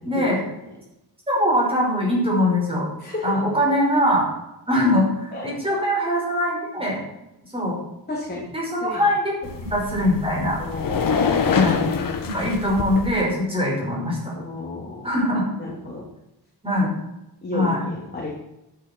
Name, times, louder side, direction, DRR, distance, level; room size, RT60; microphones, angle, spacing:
voice 1, 0.0-0.4 1.3-2.8 3.2-4.3 4.7-7.0 7.5-7.8 8.5-9.3 9.7-10.6 11.5-11.8 12.2-14.3 15.0-15.5 16.6-17.0 17.5-17.9, left 1 dB, 15° right, -3 dB, 5.7 m, -22 dB
voice 2, 3.0-3.4 5.3-5.5 8.1-8.5 8.8-9.0 10.6-11.3 14.3-15.1 15.6-16.0 17.4-18.3, left 2 dB, 25° left, -3 dB, 3.0 m, -32 dB
sound 1, 9.4-13.2, left 5 dB, 55° left, 1.8 m, -25 dB
13.0 x 9.7 x 4.7 m, 0.90 s
wide cardioid pair, 140°, 40 cm